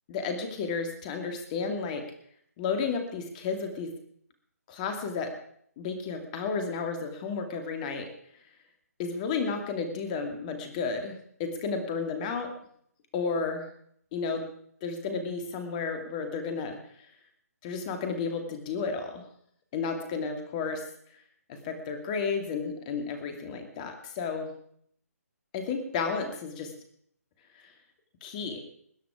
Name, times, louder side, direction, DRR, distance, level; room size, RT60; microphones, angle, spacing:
voice 1, 0.1-2.1 2.6-3.9 4.7-5.3 5.8-8.1 9.0-12.5 13.1-13.7 14.1-14.5 14.8-17.1 17.6-19.2 19.7-20.9 21.5-24.5 25.5-26.7 27.5-27.7 28.2-28.6, left 5 dB, 30° left, 5 dB, 2.4 m, -32 dB
21.0 x 9.4 x 4.9 m, 0.65 s
figure-of-eight pair, 145°, 9 cm